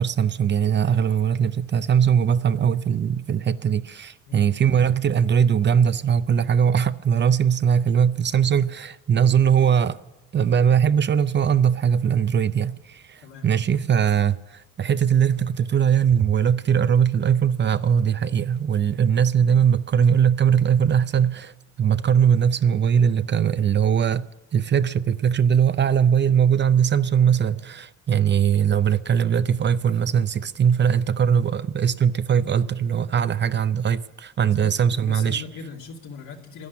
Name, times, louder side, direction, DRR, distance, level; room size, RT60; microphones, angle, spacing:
voice 1, 0.0-10.0 10.3-35.4, right 8 dB, 35° right, 0.5 m, -20 dB
voice 2, 34.4-36.7, left 5 dB, 80° left, 2.8 m, -40 dB
11.5 x 11.0 x 8.4 m
cardioid pair, 90°, 30 cm